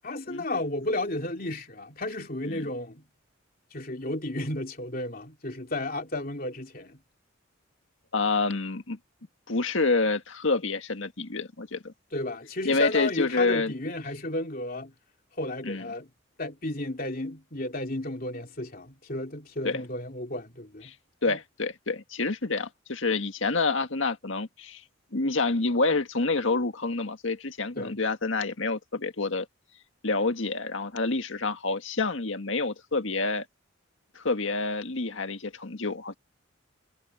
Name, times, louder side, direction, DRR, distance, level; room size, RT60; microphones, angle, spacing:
voice 1, 0.0-3.0 3.7-7.0 12.1-14.9 15.4-16.1 16.4-20.9 21.2-21.4 27.8-27.9, left 2 dB, 45° left, 3.0 m, -33 dB
voice 2, 8.1-9.0 9.5-11.9 12.6-13.7 15.6-15.8 19.6-19.8 21.2-24.8 25.1-29.5 30.0-33.5 34.2-36.1, left 3 dB, 70° left, 1.8 m, -28 dB
head